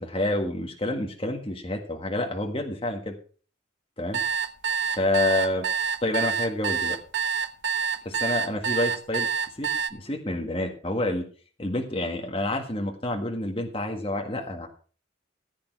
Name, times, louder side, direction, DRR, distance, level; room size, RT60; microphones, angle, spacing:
voice 1, 0.0-3.2 4.0-4.2 4.9-5.7 6.0-7.0 8.0-9.3 9.6-11.2 11.6-14.7, left 1 dB, 25° left, 2 dB, 1.6 m, -28 dB
sound 1, 4.1-9.9, right 6 dB, 65° right, 0.9 m, -27 dB
15.0 x 8.8 x 4.6 m, 0.40 s
head